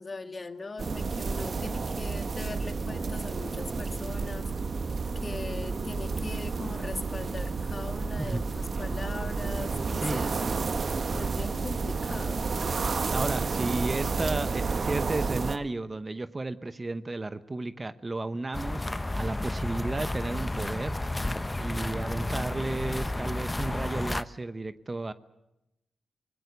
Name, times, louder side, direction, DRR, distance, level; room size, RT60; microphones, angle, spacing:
voice 1, 0.0-4.5 5.2-10.4 11.1-12.5, left 3 dB, 35° left, 8 dB, 1.8 m, -40 dB
sound 1, 0.8-15.6, right 4 dB, 50° right, 1.1 m, -31 dB
voice 2, 9.9-10.6 13.1-18.9 19.1-21.0 21.6-25.1, right 2 dB, 30° right, 12 dB, 0.9 m, -33 dB
sound 2, 18.5-24.2, left 1 dB, 15° left, 0.8 m, -32 dB
25.0 x 20.0 x 8.1 m, 0.88 s
cardioid pair, 65°, 0 cm